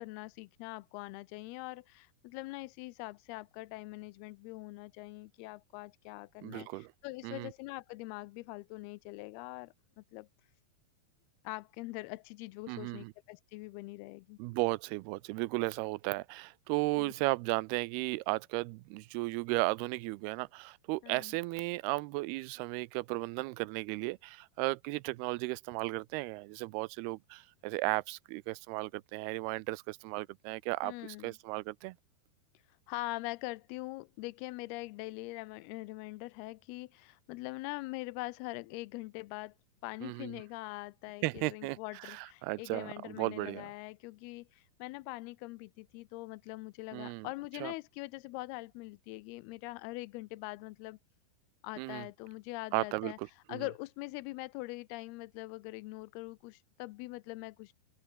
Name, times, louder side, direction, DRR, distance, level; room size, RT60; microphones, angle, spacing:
voice 1, 0.0-10.3 11.4-14.4 17.0-17.1 21.0-21.4 30.8-31.4 32.9-39.5 39.8-51.0 51.6-53.2 53.5-57.7, left 21 dB, 85° left, 2.6 m, -43 dB
voice 2, 6.4-6.9 7.2-7.5 12.7-13.1 14.4-32.0 40.0-40.4 41.2-43.7 46.9-47.3 47.6-47.7 51.8-52.1 52.7-53.6, right 22 dB, 85° right, 2.6 m, -35 dB
open air
omnidirectional pair, 4.5 m